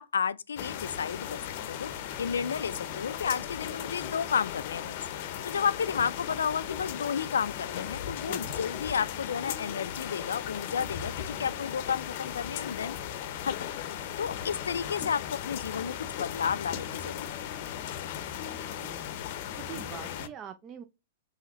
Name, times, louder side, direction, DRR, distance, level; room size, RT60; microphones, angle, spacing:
voice 1, 0.0-1.4 1.7-1.9 2.2-4.9 5.4-13.0 13.4-13.7 14.2-17.4, left 7 dB, 85° left, 0.3 m, -32 dB
sound 1, 0.6-20.3, left 10 dB, 55° left, 0.6 m, -37 dB
voice 2, 18.6-19.1 19.5-20.8, right 8 dB, 30° right, 0.5 m, -44 dB
5.6 x 3.1 x 3.0 m
hypercardioid pair, 125°, 0 cm